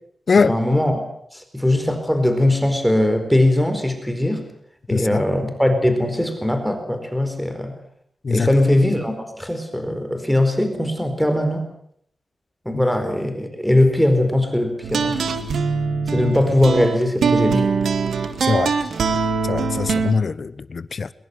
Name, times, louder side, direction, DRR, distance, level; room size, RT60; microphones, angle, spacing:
voice 1, 0.5-1.0 1.3-4.4 4.9-7.7 8.3-11.6 12.6-15.3 16.1-17.7, left 1 dB, ahead, 4.5 m, -20 dB
voice 2, 4.9-5.2 8.2-8.5 12.7-12.8 18.4-18.8 19.4-21.1, left 4 dB, 55° left, 1.2 m, -22 dB
sound 1, 14.8-20.1, right 5 dB, 90° right, 2.0 m, -22 dB
22.0 x 21.5 x 8.0 m
wide cardioid pair, 90°, 0 cm